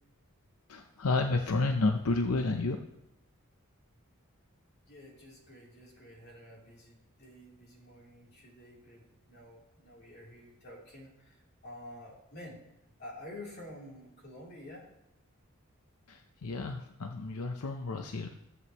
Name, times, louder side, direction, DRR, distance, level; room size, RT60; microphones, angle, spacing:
voice 1, 0.7-2.8 16.1-18.3, left 3 dB, 85° left, 5 dB, 0.6 m, -31 dB
voice 2, 4.9-11.4 11.6-12.6 13.0-14.9, left 1 dB, 50° left, -4 dB, 3.3 m, -49 dB
14.0 x 8.0 x 3.0 m, 0.90 s
head